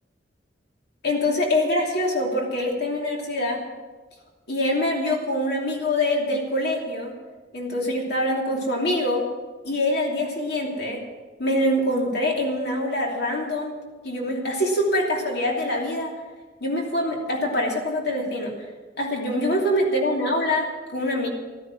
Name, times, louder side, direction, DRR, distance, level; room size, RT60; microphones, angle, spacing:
voice 1, 1.0-3.6 4.5-7.1 7.5-9.3 9.6-11.0 11.4-13.7 14.0-16.1 16.6-18.5 19.0-21.3, left 1 dB, 60° left, 0 dB, 2.9 m, -24 dB
13.5 x 13.0 x 6.2 m, 1.3 s
head